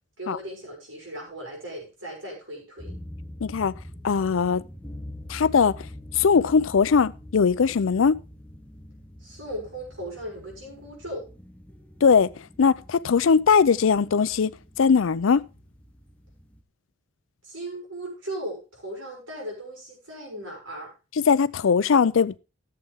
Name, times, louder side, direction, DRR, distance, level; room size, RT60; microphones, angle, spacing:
voice 1, 0.2-3.0 9.2-11.3 17.4-20.9, right 1 dB, 85° right, 6.4 m, -37 dB
sound 1, 2.8-16.6, left 1 dB, 5° left, 1.0 m, -44 dB
voice 2, 3.4-3.7 4.0-4.6 5.3-5.7 6.1-8.2 12.0-12.3 12.6-14.5 14.8-15.4 21.2-22.4, left 6 dB, 85° left, 0.5 m, -20 dB
14.5 x 7.8 x 3.5 m
head